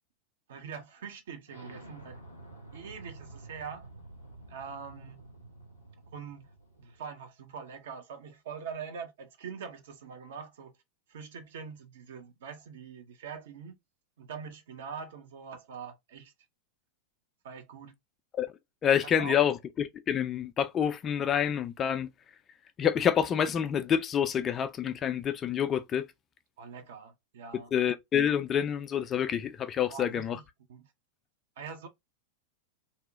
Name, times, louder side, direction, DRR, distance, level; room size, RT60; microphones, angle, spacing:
voice 1, 0.5-2.2 2.7-3.9 4.5-5.2 6.1-6.5 6.8-10.7 11.1-13.7 14.2-16.3 17.4-17.9 19.2-19.4 26.6-27.7 29.8-30.4 30.7-30.9 31.6-31.9, right 6 dB, 60° right, 0.6 m, -43 dB
Explosion, 1.5-7.0, right 2 dB, 90° right, 0.8 m, -50 dB
voice 2, 18.8-22.1 22.8-26.1 27.7-30.4, left 8 dB, 25° left, 0.3 m, -27 dB
2.8 x 2.0 x 2.5 m
figure-of-eight pair, 90°, 0 cm